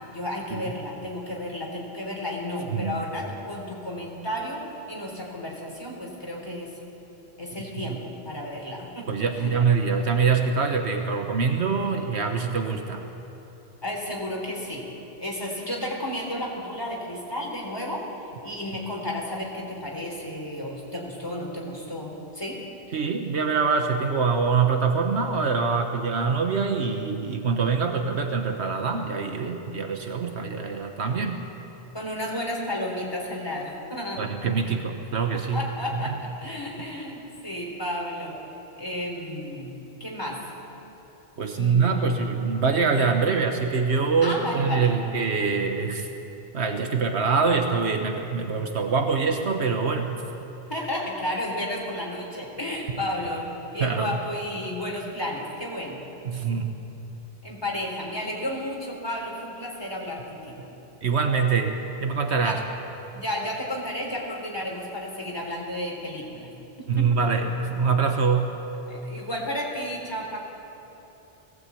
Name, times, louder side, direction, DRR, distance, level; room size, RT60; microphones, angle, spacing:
voice 1, 0.1-4.6 4.9-6.7 7.4-9.1 9.4-9.5 13.8-14.8 15.2-18.0 18.4-22.6 31.9-34.3 34.6-34.7 35.5-38.4 38.8-40.5 41.5-42.0 44.2-44.9 50.7-56.0 57.4-60.7 62.4-62.6 63.1-66.5 67.0-67.1 68.9-70.4, left 1 dB, 20° left, -2 dB, 3.8 m, -32 dB
voice 2, 2.7-3.0 7.6-8.0 9.1-13.1 22.9-31.4 34.2-35.6 35.9-36.1 41.4-46.1 46.5-50.2 53.8-54.1 56.2-56.7 61.0-62.6 66.9-68.5, right 5 dB, 80° right, 4 dB, 1.4 m, -24 dB
19.0 x 17.0 x 8.4 m, 3.0 s
omnidirectional pair, 1.1 m